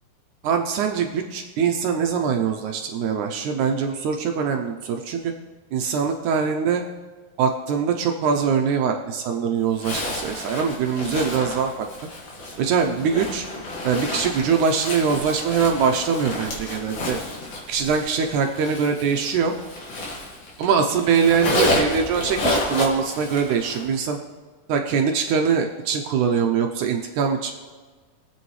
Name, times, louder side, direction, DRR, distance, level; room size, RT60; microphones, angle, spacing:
voice 1, 0.4-5.3 5.7-6.8 7.4-11.9 12.6-13.5 13.8-17.2 17.7-19.5 20.6-24.2 24.7-27.5, right 6 dB, 75° right, 4 dB, 2.0 m, -23 dB
Zipper (clothing), 9.8-20.7 21.0-23.9, left 1 dB, 65° left, 3.3 m, -30 dB
22.5 x 8.0 x 3.2 m, 1.4 s
omnidirectional pair, 3.7 m